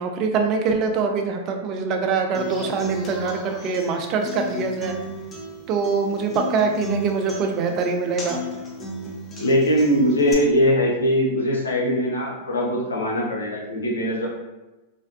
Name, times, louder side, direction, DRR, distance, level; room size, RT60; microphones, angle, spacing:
voice 1, 0.0-5.0 5.7-8.4, right 5 dB, 40° right, 4 dB, 0.4 m, -24 dB
Human voice / Acoustic guitar, 2.3-10.3, equal, 25° left, 0.5 m, -34 dB
voice 2, 9.4-14.3, equal, 90° left, -2 dB, 0.6 m, -21 dB
2.5 x 2.1 x 2.4 m, 1.1 s
hypercardioid pair, 110°, 0 cm